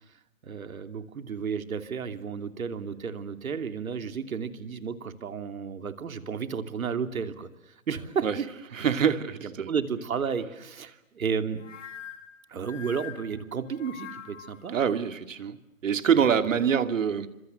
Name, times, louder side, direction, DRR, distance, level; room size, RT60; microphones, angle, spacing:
voice 1, 0.4-8.5 9.4-11.6 12.5-14.7 16.1-16.3, right 6 dB, 80° right, 3.0 m, -32 dB
voice 2, 8.7-9.7 14.7-15.6 15.8-17.3, right 7 dB, 65° right, 2.4 m, -25 dB
sound 1, 11.6-14.7, left 8 dB, 60° left, 3.4 m, -44 dB
29.5 x 26.0 x 7.8 m
hypercardioid pair, 170°, 41 cm